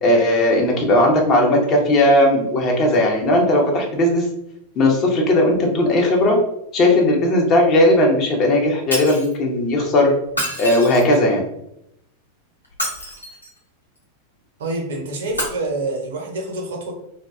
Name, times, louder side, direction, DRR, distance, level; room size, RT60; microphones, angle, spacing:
voice 1, 0.0-4.3 4.8-6.4 6.7-10.1 10.6-11.4, left 1 dB, 30° left, 0 dB, 0.6 m, -17 dB
Shatter, 8.9-9.3 10.3-11.3 12.6-13.6 15.3-15.4, equal, 85° left, 0.7 m, -27 dB
voice 2, 14.6-16.9, right 2 dB, 60° right, 1 dB, 0.6 m, -27 dB
2.5 x 2.1 x 2.3 m, 0.79 s
figure-of-eight pair, 90°, 0 cm